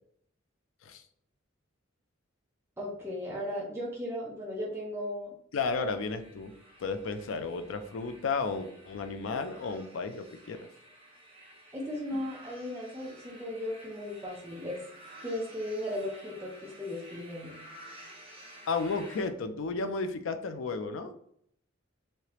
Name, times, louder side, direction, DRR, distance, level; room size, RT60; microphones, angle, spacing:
voice 1, 2.8-5.3 11.7-14.8 15.2-17.6, left 1 dB, 10° right, -4 dB, 0.6 m, -36 dB
voice 2, 5.5-6.5 6.8-10.6 18.7-21.1, left 4 dB, 70° left, 9 dB, 0.4 m, -33 dB
sound 1, 5.5-19.3, right 1 dB, 25° right, 1.0 m, -53 dB
3.2 x 2.8 x 2.9 m, 0.69 s
head